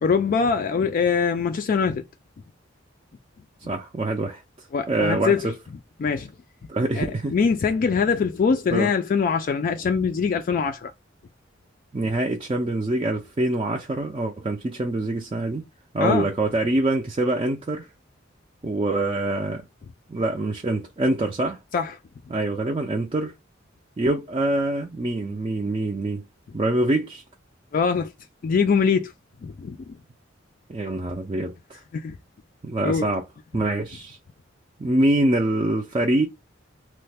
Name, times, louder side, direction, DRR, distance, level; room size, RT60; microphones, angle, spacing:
voice 1, 0.0-2.1 4.7-5.5 6.0-6.3 7.0-10.9 16.0-16.3 21.7-21.9 27.7-28.1 28.4-29.1 29.4-29.9 31.9-32.2 32.8-33.1, left 5 dB, 45° left, 0.3 m, -23 dB
voice 2, 3.7-4.4 4.9-5.6 6.7-7.3 8.7-8.9 11.9-15.6 15.9-17.9 18.6-19.6 20.1-21.6 22.3-23.3 24.0-26.2 26.5-27.2 30.7-31.8 32.6-33.2 33.5-34.2 34.8-36.3, right 2 dB, 25° right, 0.4 m, -25 dB
3.1 x 2.1 x 3.3 m
head